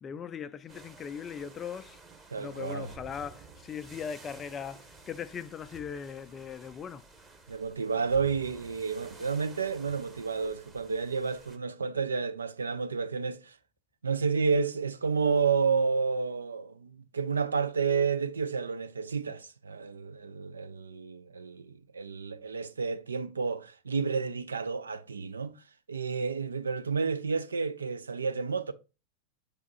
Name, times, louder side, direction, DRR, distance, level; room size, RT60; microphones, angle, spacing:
voice 1, 0.0-2.0 2.4-7.1, left 7 dB, 25° left, 0.4 m, -39 dB
sound 1, 0.7-11.6, right 3 dB, 15° right, 0.9 m, -52 dB
voice 2, 2.3-2.9 7.5-13.6 14.0-25.6 25.9-28.7, right 5 dB, 75° right, 0.4 m, -30 dB
6.7 x 3.5 x 4.0 m
figure-of-eight pair, 90°, 0 cm